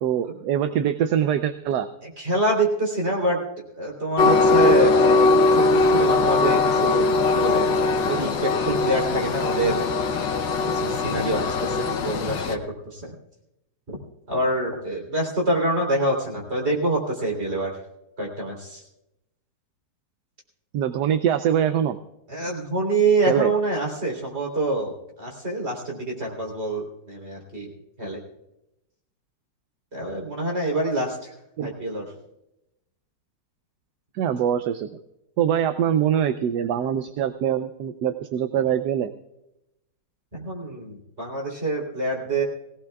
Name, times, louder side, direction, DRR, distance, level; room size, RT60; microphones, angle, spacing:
voice 1, 0.0-1.9 20.7-22.0 23.3-23.5 31.6-31.7 34.2-35.0 35.4-39.1, right 9 dB, 70° right, 10 dB, 1.1 m, -23 dB
voice 2, 2.0-3.4 3.7-5.1 5.5-7.8 8.1-9.8 10.7-13.2 13.9-14.0 14.3-17.8 18.2-18.8 22.3-27.7 28.0-28.2 29.9-31.3 31.6-32.1 40.3-42.4, right 2 dB, 35° right, -1 dB, 3.7 m, -26 dB
Train, 4.2-12.6, left 3 dB, 80° left, 1.6 m, -20 dB
20.5 x 17.5 x 2.3 m, 0.88 s
omnidirectional pair, 2.0 m